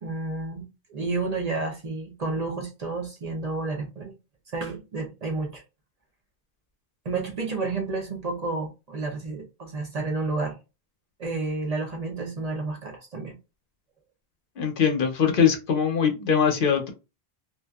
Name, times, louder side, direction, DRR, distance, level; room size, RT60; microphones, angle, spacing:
voice 1, 0.0-4.1 4.5-5.6 7.0-10.6 11.2-13.3, right 3 dB, 45° right, 0.6 m, -31 dB
voice 2, 14.6-16.9, left 7 dB, 60° left, 0.8 m, -22 dB
2.6 x 2.3 x 2.2 m
omnidirectional pair, 1.0 m